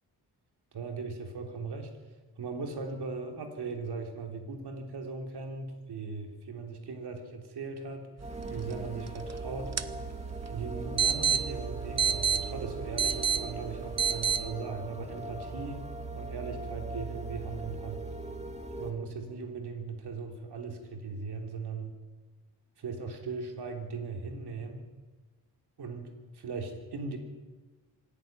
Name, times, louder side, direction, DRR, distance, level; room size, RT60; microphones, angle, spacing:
voice 1, 0.7-1.9 2.4-8.1 8.5-9.7 10.5-15.9 16.1-18.0 18.8-21.9 22.8-24.8 25.8-26.1 26.3-27.2, right 4 dB, 75° right, 3 dB, 3.5 m, -38 dB
sound 1, 8.2-18.9, right 3 dB, 15° right, 2.4 m, -39 dB
sound 2, 8.2-14.4, right 7 dB, 40° right, 1.0 m, -31 dB
25.5 x 11.0 x 9.5 m, 1.3 s
cardioid pair, 105°, 40 cm